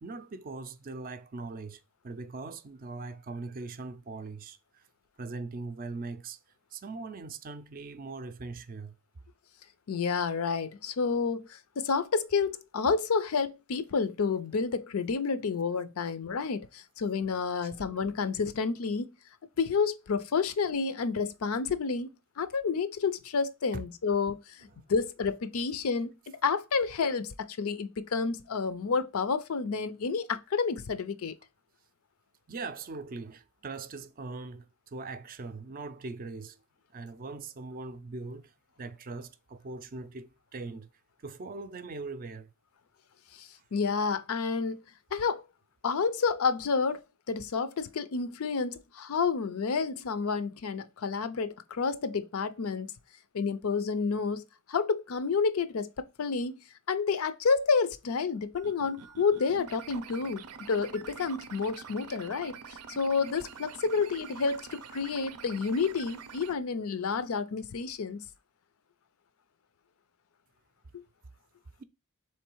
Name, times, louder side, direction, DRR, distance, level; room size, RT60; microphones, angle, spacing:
voice 1, 0.0-4.8 5.2-6.4 6.7-8.9 17.6-17.8 32.5-36.6 36.9-38.5 38.8-40.9 41.2-42.5, right 3 dB, 40° right, 0.4 m, -41 dB
voice 2, 9.9-19.1 19.6-22.1 22.4-26.1 26.4-31.3 43.4-44.8 45.1-45.4 45.8-47.0 47.3-52.9 53.3-55.9 56.2-56.5 56.9-62.6 62.9-68.2 70.9-71.0, left 5 dB, 70° left, 0.5 m, -30 dB
sound 1, 58.5-66.5, right 6 dB, 90° right, 0.5 m, -46 dB
3.7 x 3.2 x 4.5 m
head